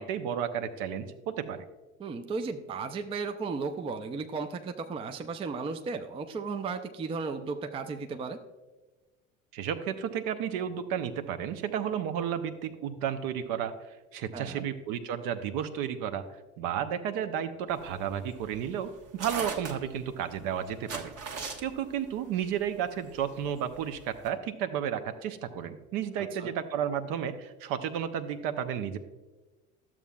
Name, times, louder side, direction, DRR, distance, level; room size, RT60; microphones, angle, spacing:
voice 1, 0.0-1.6 9.5-16.2 16.6-21.1 21.6-29.0, right 9 dB, 50° right, 10 dB, 0.8 m, -32 dB
voice 2, 2.0-8.4 14.3-14.6 26.2-26.5, right 4 dB, 15° right, 6 dB, 0.4 m, -35 dB
sound 1, 17.7-24.3, right 4 dB, 35° right, 1.2 m, -40 dB
12.0 x 7.2 x 2.3 m, 1.2 s
hypercardioid pair, 70°, 41 cm